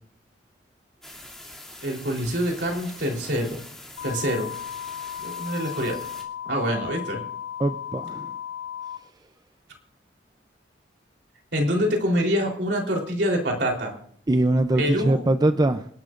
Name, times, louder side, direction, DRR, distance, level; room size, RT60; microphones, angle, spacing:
sound 1, 1.0-6.2, left 1 dB, ahead, 2.7 m, -44 dB
voice 1, 1.8-3.6 4.0-4.5 5.2-6.0 6.5-7.2 11.5-13.9 14.8-15.2, equal, 65° right, 1 dB, 3.6 m, -25 dB
sound 2, 4.0-9.0, left 9 dB, 90° left, 0.9 m, -35 dB
voice 2, 7.6-8.3 14.3-15.9, right 1 dB, 20° right, 8 dB, 0.5 m, -22 dB
27.5 x 12.0 x 2.5 m, 0.64 s
head